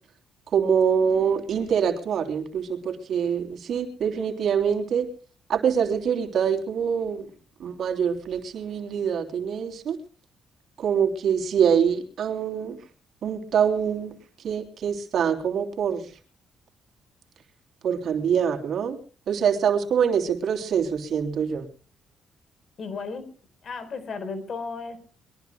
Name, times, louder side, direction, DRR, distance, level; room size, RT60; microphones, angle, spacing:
voice 1, 0.5-5.1 5.5-7.3 7.6-10.0 10.8-12.8 13.2-14.1 14.4-16.1 17.8-19.0 19.3-21.7, right 7 dB, 65° right, 6 dB, 3.3 m, -24 dB
voice 2, 22.8-23.3 23.6-25.0, left 4 dB, 50° left, 12 dB, 4.5 m, -34 dB
24.0 x 22.0 x 2.3 m, 0.39 s
cardioid pair, 90°, 0 cm